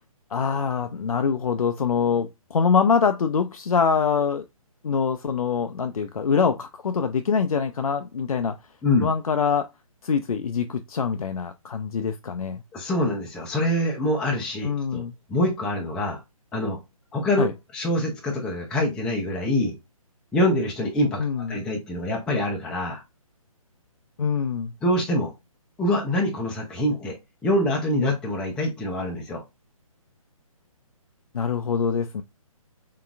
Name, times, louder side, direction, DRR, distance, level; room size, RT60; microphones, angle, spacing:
voice 1, 0.3-4.4 4.8-8.5 9.0-9.7 10.0-12.6 14.6-15.1 17.4-17.5 21.2-21.6 24.2-24.7 31.3-32.2, left 6 dB, 75° left, 0.4 m, -24 dB
voice 2, 12.7-15.0 15.3-16.2 16.5-16.8 17.1-17.4 17.7-19.7 20.3-23.0 24.8-25.3 25.8-27.2 27.4-29.4, left 1 dB, 5° left, 0.4 m, -25 dB
3.8 x 3.5 x 2.3 m
figure-of-eight pair, 140°, 19 cm